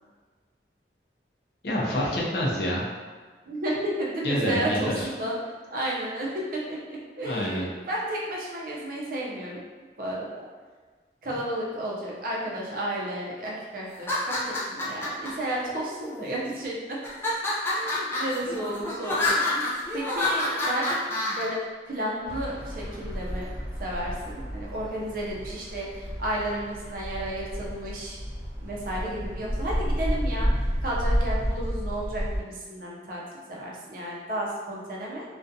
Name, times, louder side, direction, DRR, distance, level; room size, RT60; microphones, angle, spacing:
voice 1, 1.6-2.8 4.2-5.1 7.2-7.7, equal, 65° left, -4 dB, 0.5 m, -27 dB
voice 2, 3.5-5.4 5.7-6.6 6.9-9.6 10.0-10.5 11.2-17.0 17.7-21.0 21.3-21.6 21.9-23.5 23.8-28.2 28.6-33.2 33.5-35.2, right 1 dB, 50° right, -4 dB, 0.5 m, -32 dB
sound 1, 13.9-15.3 16.0-16.6 17.0-21.4, left 2 dB, 15° left, 0.4 m, -28 dB
sound 2, 22.2-32.4, equal, 30° left, 1.0 m, -31 dB
2.4 x 2.2 x 2.6 m, 1.4 s
head